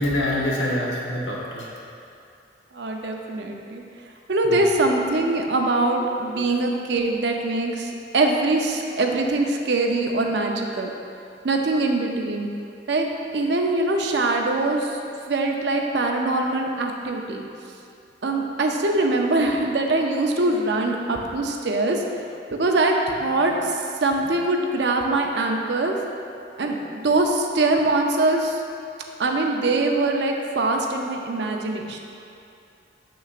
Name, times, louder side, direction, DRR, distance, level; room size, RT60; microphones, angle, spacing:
voice 1, 0.0-1.7 4.4-4.6 6.3-6.5, left 1 dB, 85° left, -4 dB, 1.2 m, -26 dB
voice 2, 2.7-3.8 4.3-10.9 11.4-12.5 12.9-15.0 15.3-17.4 18.2-22.0 22.5-26.0 26.6-28.6 29.2-32.0, right 2 dB, 70° right, 2 dB, 0.6 m, -23 dB
6.8 x 6.2 x 2.5 m, 2.6 s
head